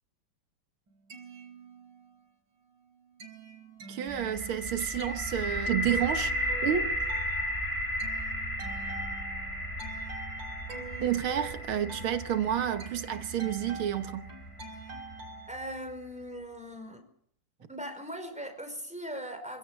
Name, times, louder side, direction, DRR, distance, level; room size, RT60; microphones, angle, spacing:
sound 1, 0.9-2.3 2.6-15.5, right 4 dB, 65° right, 4.3 m, -46 dB
voice 1, 3.9-7.0 11.0-14.3, right 10 dB, 85° right, 2.1 m, -30 dB
sound 2, 4.1-15.9, equal, 25° left, 6.7 m, -35 dB
voice 2, 15.5-17.1 17.7-19.6, equal, 5° right, 4.8 m, -39 dB
25.5 x 16.5 x 7.2 m
omnidirectional pair, 2.2 m